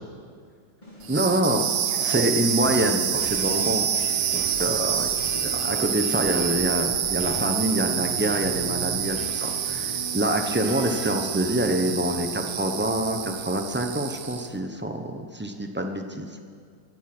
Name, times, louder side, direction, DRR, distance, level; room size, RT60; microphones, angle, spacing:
sound 1, 0.8-14.3, left 1 dB, 25° left, 4.3 m, -40 dB
sound 2, 1.0-14.5, right 9 dB, 60° right, 0.9 m, -27 dB
voice 1, 1.1-1.6 2.0-3.9 4.3-5.1 5.4-16.3, right 1 dB, 20° right, 4 dB, 0.3 m, -26 dB
23.0 x 8.2 x 6.1 m, 2.2 s
omnidirectional pair, 1.8 m